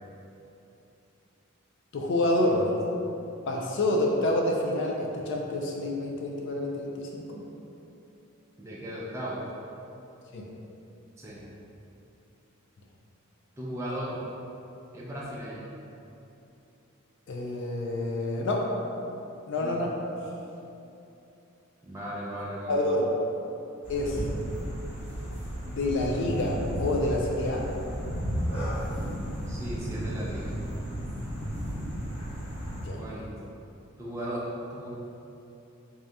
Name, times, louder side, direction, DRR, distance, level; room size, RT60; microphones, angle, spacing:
voice 1, 1.9-2.7 3.5-7.4 10.3-10.4 17.3-18.7 19.5-19.9 22.7-23.2 23.9-24.2 25.6-27.7 32.7-33.0, left 1 dB, 55° left, 0 dB, 0.4 m, -28 dB
voice 2, 8.6-9.4 11.2-11.5 13.6-14.2 14.9-15.8 19.6-19.8 21.8-22.8 29.5-30.5 33.0-33.3 34.0-34.9, equal, 15° right, -6 dB, 0.4 m, -36 dB
sound 1, 23.8-32.9, equal, 30° left, 1.0 m, -33 dB
3.6 x 2.7 x 3.3 m, 2.8 s
head